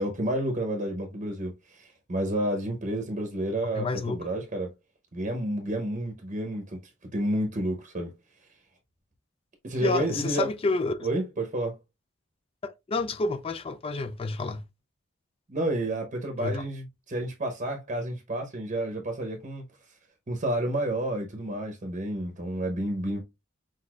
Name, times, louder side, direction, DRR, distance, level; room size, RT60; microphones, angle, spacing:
voice 1, 0.0-4.7 5.1-6.8 7.1-8.1 9.6-10.5 11.0-11.8 15.5-19.6 20.3-23.2, right 1 dB, 35° right, 0.8 m, -30 dB
voice 2, 3.8-4.2 9.8-10.9 12.6-14.6 16.4-16.6, left 3 dB, 25° left, 0.4 m, -29 dB
6.0 x 2.6 x 2.4 m
head